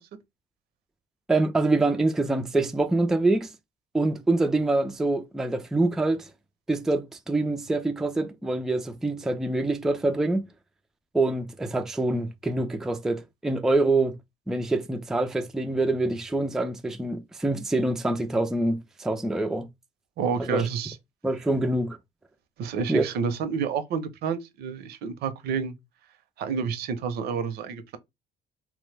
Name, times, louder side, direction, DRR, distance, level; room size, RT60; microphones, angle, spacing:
voice 1, 1.3-3.5 3.9-6.3 6.7-10.5 11.1-14.2 14.5-19.7 20.4-20.7 21.2-22.0 22.9-23.0, right 2 dB, 5° right, 0.3 m, -25 dB
voice 2, 20.2-21.0 22.6-25.7 26.4-28.0, right 6 dB, 70° right, 0.6 m, -29 dB
3.0 x 2.0 x 3.2 m
cardioid pair, 110°, 17 cm